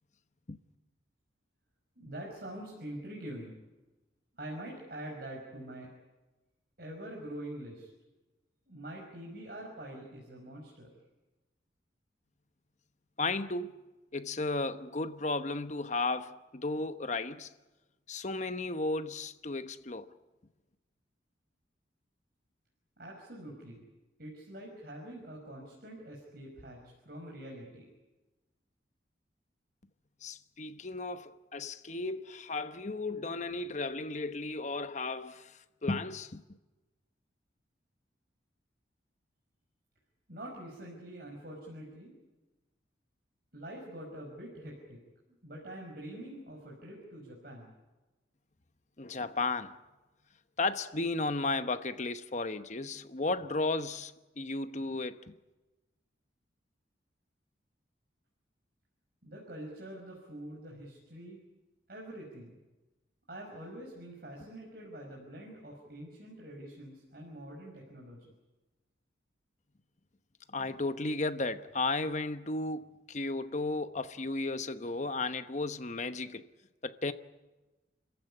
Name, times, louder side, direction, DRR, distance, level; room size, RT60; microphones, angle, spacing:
voice 1, 2.0-3.6 4.4-5.9 6.8-7.9 8.7-10.9 23.0-23.8 24.2-27.8 40.3-42.1 43.5-45.0 45.3-47.7 59.2-61.4 61.9-62.6 63.3-68.3, right 1 dB, 55° right, 5.5 m, -45 dB
voice 2, 13.2-13.8 14.1-17.5 18.1-20.1 30.2-36.4 49.0-49.8 50.6-55.3 70.5-76.5 76.8-77.1, left 3 dB, 40° left, 1.0 m, -34 dB
29.5 x 15.0 x 10.0 m
head